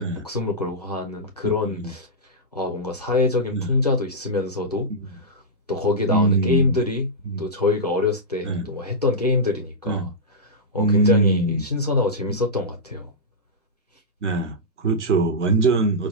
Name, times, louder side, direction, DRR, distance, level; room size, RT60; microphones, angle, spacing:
voice 1, 0.0-2.1 2.5-4.9 5.7-7.1 7.4-10.1 10.5-13.1, left 3 dB, 30° left, 0.4 m, -24 dB
voice 2, 6.1-6.7 7.2-7.4 8.4-8.7 9.9-10.1 10.7-11.7 14.2-16.1, right 2 dB, 50° right, 1.0 m, -22 dB
4.6 x 2.2 x 2.8 m
figure-of-eight pair, 135°, 46 cm